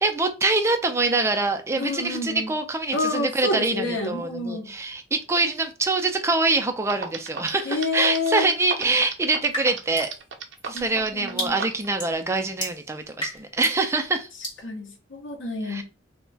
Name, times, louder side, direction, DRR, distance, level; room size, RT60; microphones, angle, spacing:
voice 1, 0.0-10.1 10.6-14.3 15.7-15.8, right 3 dB, 15° right, 0.3 m, -24 dB
voice 2, 1.8-2.5 2.9-4.7 7.7-8.5 10.7-11.5 14.6-15.8, left 2 dB, 80° left, 0.7 m, -28 dB
sound 1, 6.6-6.7 6.9-11.9, right 5 dB, 70° right, 0.5 m, -32 dB
sound 2, 9.5-10.2 10.6-13.8 14.4-14.6, equal, 20° left, 1.1 m, -34 dB
2.3 x 2.1 x 3.8 m
head